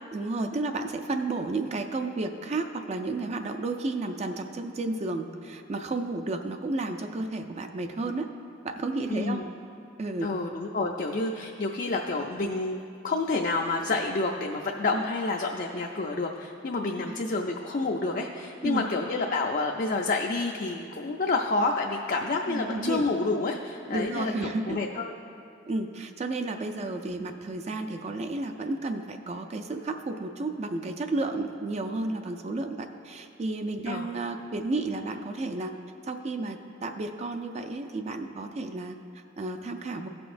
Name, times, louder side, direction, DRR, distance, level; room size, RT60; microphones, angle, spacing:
voice 1, 0.1-8.3 8.6-9.4 10.0-10.3 14.9-15.0 17.0-17.1 18.6-18.9 22.5-23.1 23.9-24.8 25.7-35.7 36.0-40.1, right 2 dB, 35° right, 6 dB, 0.4 m, -32 dB
voice 2, 9.1-9.5 10.2-25.1 33.8-34.1, left 3 dB, 45° left, 1 dB, 0.4 m, -29 dB
16.5 x 6.0 x 2.5 m, 2.5 s
head